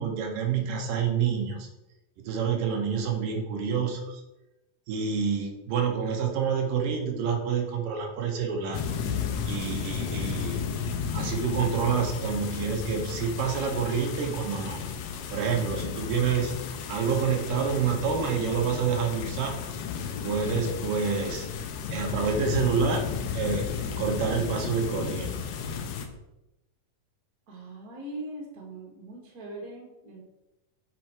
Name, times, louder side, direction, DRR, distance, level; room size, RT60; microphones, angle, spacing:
voice 1, 0.0-1.7 2.2-4.2 4.9-8.8 9.5-10.6 11.1-14.8 15.3-16.6 16.9-19.6 20.2-21.5 21.9-23.1 23.3-23.7 24.0-25.3, right 6 dB, 80° right, 3 dB, 2.6 m, -28 dB
sound 1, 8.7-26.1, left 6 dB, 75° left, 1.8 m, -33 dB
voice 2, 27.5-30.2, right 1 dB, 35° right, -1 dB, 1.8 m, -41 dB
7.3 x 5.5 x 4.6 m, 0.95 s
omnidirectional pair, 4.0 m